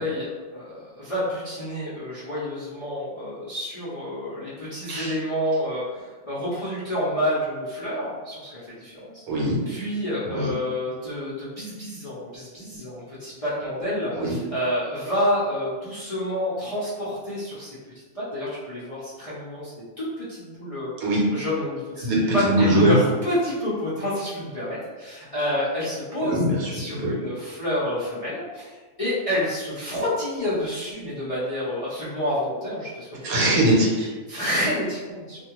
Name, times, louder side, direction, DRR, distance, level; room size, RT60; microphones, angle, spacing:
voice 1, 0.0-9.2 9.7-17.8 18.1-26.4 26.7-33.2 33.6-33.7 34.3-35.4, equal, 40° left, -12 dB, 0.5 m, -29 dB
voice 2, 9.3-9.6 10.3-10.5 14.1-14.4 21.0-21.2 22.0-23.0 26.2-27.1 33.2-34.1, right 1 dB, 75° right, -4 dB, 1.2 m, -22 dB
2.5 x 2.3 x 2.9 m, 1.3 s
omnidirectional pair, 1.5 m